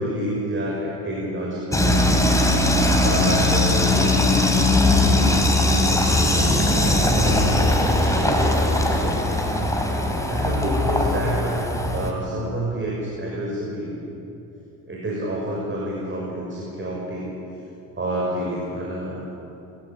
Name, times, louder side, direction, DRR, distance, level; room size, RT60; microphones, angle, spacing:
voice 1, 0.0-2.0 3.0-9.2 10.2-11.7 11.9-13.9 14.9-17.3 18.0-19.2, right 1 dB, 30° right, -4 dB, 6.3 m, -28 dB
sound 1, 1.7-12.1, left 1 dB, 10° left, 3.9 m, -20 dB
28.0 x 15.0 x 8.7 m, 3.0 s
supercardioid pair, 90°, 40 cm